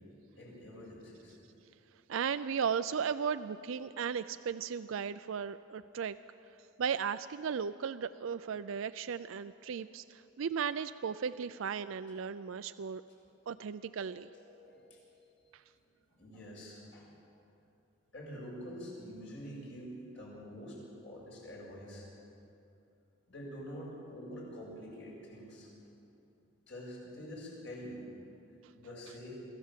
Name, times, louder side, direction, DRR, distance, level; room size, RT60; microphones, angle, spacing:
voice 1, 0.4-1.4 14.1-15.0 16.1-17.1 18.1-20.8 21.0-22.1 23.3-25.7 26.7-28.2 28.7-29.4, equal, 65° left, -4 dB, 7.1 m, -46 dB
voice 2, 2.1-6.2 6.8-13.0 13.5-14.3 15.5-15.6, right 7 dB, 80° right, 12 dB, 0.4 m, -36 dB
25.5 x 14.5 x 7.5 m, 2.7 s
head